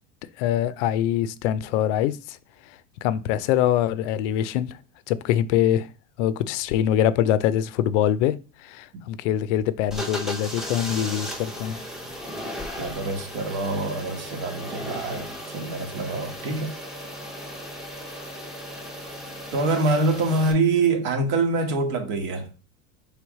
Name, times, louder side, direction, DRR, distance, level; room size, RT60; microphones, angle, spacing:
voice 1, 0.4-2.4 2.6-4.8 5.1-5.9 6.2-11.8, left 11 dB, 65° left, 0.5 m, -24 dB
sound 1, 9.9-20.5, equal, ahead, 0.7 m, -36 dB
voice 2, 12.8-16.7 19.5-22.5, right 3 dB, 60° right, 1.3 m, -25 dB
3.4 x 3.1 x 4.7 m
supercardioid pair, 140°, 39 cm